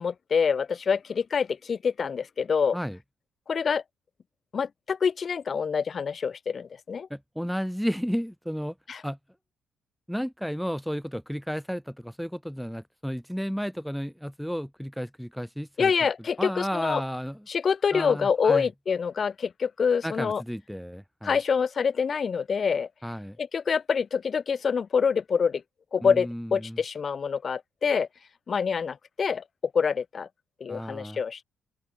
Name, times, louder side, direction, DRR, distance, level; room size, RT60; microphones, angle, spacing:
voice 1, 0.0-2.8 3.5-3.8 4.5-7.1 8.9-9.0 15.8-17.0 17.5-20.4 21.2-22.9 23.4-25.6 25.9-28.1 28.5-29.4 29.7-30.3 30.6-31.4, left 6 dB, 45° left, 1.4 m, -26 dB
voice 2, 7.1-8.8 9.0-9.2 10.1-15.9 16.4-17.5 17.9-18.7 20.0-21.4 23.0-23.4 26.0-26.8 30.7-31.2, equal, ahead, 5.7 m, -33 dB
cardioid pair, 90°, 0 cm